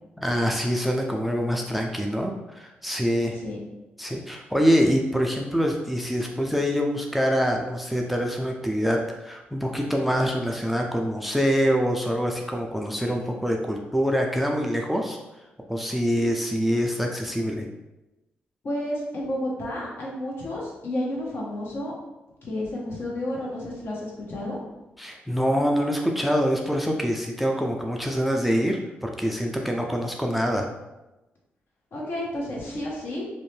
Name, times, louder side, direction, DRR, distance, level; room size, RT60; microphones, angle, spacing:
voice 1, 0.2-3.4 4.0-15.2 15.7-17.7 25.0-30.7, equal, ahead, 2 dB, 0.4 m, -25 dB
voice 2, 18.6-21.9 22.4-24.6 31.9-33.2, left 1 dB, 60° left, -3 dB, 0.9 m, -31 dB
2.6 x 2.1 x 3.1 m, 1.0 s
supercardioid pair, 55°, 4 cm